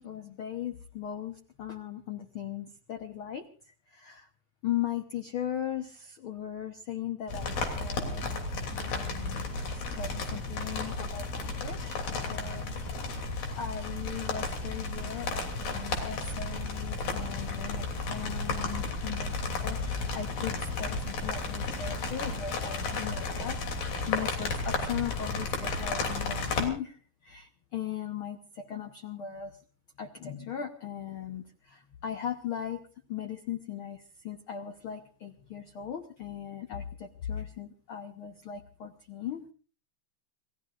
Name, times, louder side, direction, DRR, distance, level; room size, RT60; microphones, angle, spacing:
voice 1, 0.0-4.3 4.6-8.4 8.7-12.7 13.1-29.6 30.0-32.8 33.1-39.5, left 9 dB, 65° left, 6 dB, 1.3 m, -38 dB
sound 1, 7.3-26.7, left 3 dB, 85° left, 4.8 m, -33 dB
29.0 x 18.0 x 2.5 m, 0.41 s
omnidirectional pair, 3.9 m